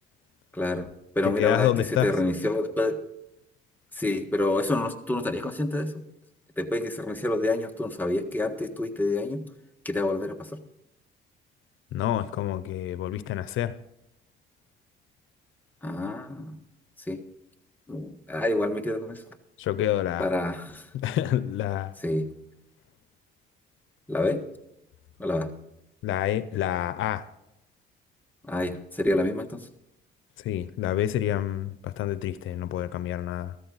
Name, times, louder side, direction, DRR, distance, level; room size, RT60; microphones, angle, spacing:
voice 1, 0.5-0.9 1.1-3.0 3.9-6.0 6.6-9.4 9.8-10.5 15.8-16.6 17.1-17.2 17.9-19.2 20.2-20.9 22.0-22.3 24.1-24.4 25.2-25.5 28.4-29.6, left 2 dB, 10° left, 1.6 m, -27 dB
voice 2, 1.2-2.1 11.9-13.7 19.6-20.3 20.9-21.9 26.0-27.2 30.4-33.5, left 12 dB, 80° left, 0.7 m, -28 dB
14.0 x 13.5 x 4.0 m
cardioid pair, 90°, 20 cm